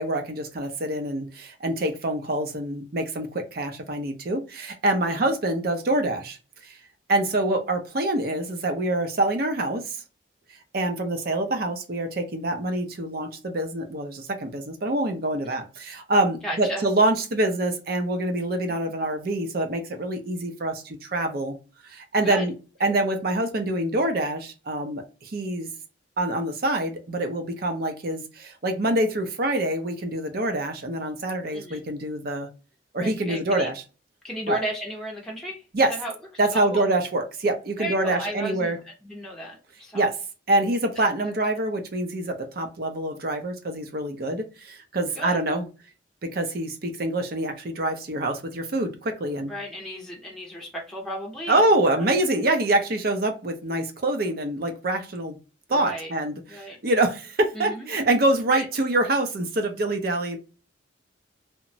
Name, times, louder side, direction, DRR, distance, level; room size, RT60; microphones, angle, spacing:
voice 1, 0.0-6.4 6.6-6.8 7.1-10.0 10.7-21.6 21.8-22.5 22.8-25.7 26.2-32.5 32.9-33.8 34.5-34.6 35.7-35.9 36.4-38.8 39.9-40.1 40.5-45.7 46.2-49.5 51.5-55.4 55.7-60.4, right 1 dB, 50° right, 6 dB, 0.5 m, -25 dB
voice 2, 16.4-16.9 22.2-22.5 22.8-22.9 31.5-31.9 33.0-33.7 34.2-35.6 36.0-36.1 36.5-36.8 37.8-40.1 41.2-41.3 45.2-45.4 49.5-51.8 55.7-56.1 56.5-56.8 57.5-57.9 58.5-58.6, equal, 5° left, -2 dB, 0.6 m, -34 dB
2.9 x 2.2 x 2.6 m, 0.33 s
head